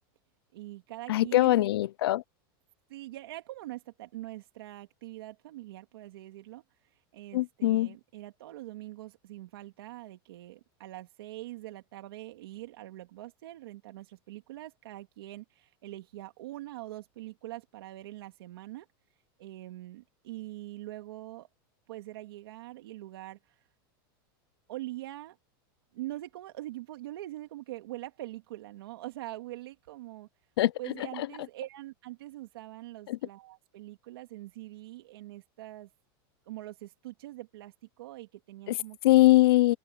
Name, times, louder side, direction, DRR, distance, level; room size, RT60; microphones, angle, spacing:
voice 1, 0.5-1.7 2.9-18.9 19.4-21.5 21.9-23.6 24.7-25.4 25.9-30.3 30.8-35.9 36.5-39.0, right 16 dB, 75° right, 2.2 m, -43 dB
voice 2, 1.1-2.2 7.3-7.9 30.6-30.7 33.1-33.2 38.7-38.8 39.0-39.8, left 16 dB, 90° left, 0.6 m, -22 dB
supercardioid pair, 175°, 12 cm